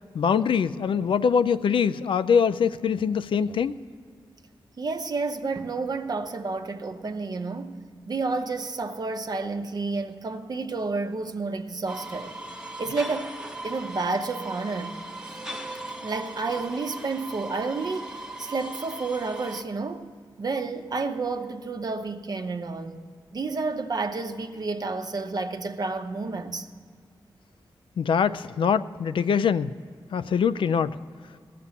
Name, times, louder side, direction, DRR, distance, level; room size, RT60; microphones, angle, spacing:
voice 1, 0.1-3.7 28.0-29.7 30.1-31.0, left 7 dB, 80° left, 0.4 m, -23 dB
voice 2, 4.8-7.8 8.1-12.3 12.8-13.3 13.6-15.0 16.0-20.1 20.4-23.0 23.3-26.7, right 3 dB, 50° right, 0.8 m, -30 dB
sound 1, 11.9-19.6, right 1 dB, 5° right, 0.9 m, -38 dB
16.0 x 6.8 x 7.0 m
cardioid pair, 75°, 9 cm